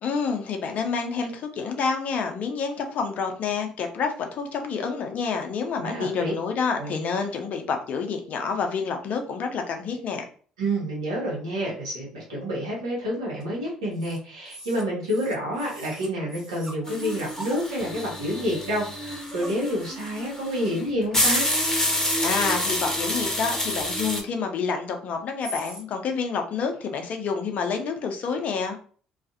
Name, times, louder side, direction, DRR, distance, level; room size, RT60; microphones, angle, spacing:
voice 1, 0.0-10.2 22.2-28.8, left 5 dB, 55° left, 4 dB, 0.6 m, -28 dB
voice 2, 5.8-6.3 6.8-7.0 10.6-21.5, equal, 80° right, -4 dB, 1.0 m, -28 dB
sound 1, 13.4-13.5 13.9-14.2 14.4-17.6 18.3-18.4 18.7-18.8 19.1-20.0 20.3-20.4 20.8-21.2 21.5-22.2 22.6-23.1 23.6-24.2 25.4-25.8, equal, 15° right, 0.9 m, -41 dB
sound 2, 16.9-24.2, left 1 dB, 15° left, 0.9 m, -28 dB
2.5 x 2.4 x 2.5 m, 0.43 s
hypercardioid pair, 50°, 3 cm